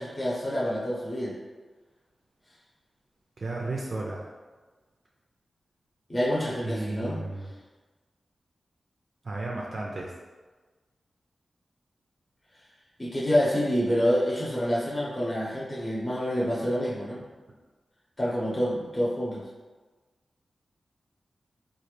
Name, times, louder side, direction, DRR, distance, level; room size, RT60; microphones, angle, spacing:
voice 1, 0.0-1.3 6.1-7.2 13.0-17.2 18.2-19.4, equal, 20° left, -6 dB, 0.9 m, -27 dB
voice 2, 3.4-4.3 6.6-7.5 9.2-10.1, right 2 dB, 50° right, -3 dB, 0.5 m, -33 dB
4.1 x 2.4 x 3.2 m, 1.3 s
wide cardioid pair, 90°, 0 cm